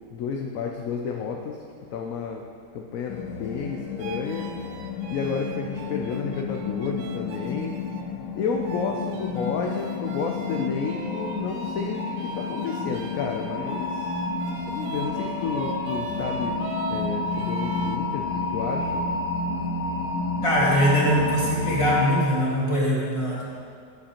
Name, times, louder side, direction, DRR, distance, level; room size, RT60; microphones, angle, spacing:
voice 1, 0.1-1.6 1.9-2.4 2.7-7.8 8.3-14.1 14.7-16.6 16.9-19.1, left 5 dB, 65° left, 1 dB, 0.9 m, -31 dB
sound 1, 3.1-22.2, left 3 dB, 85° left, 1.2 m, -30 dB
sound 2, 4.0-8.1 8.6-18.0, right 5 dB, 90° right, 1.2 m, -41 dB
voice 2, 20.4-23.5, equal, 20° left, -6 dB, 1.7 m, -22 dB
10.5 x 7.5 x 2.9 m, 2.3 s
omnidirectional pair, 1.8 m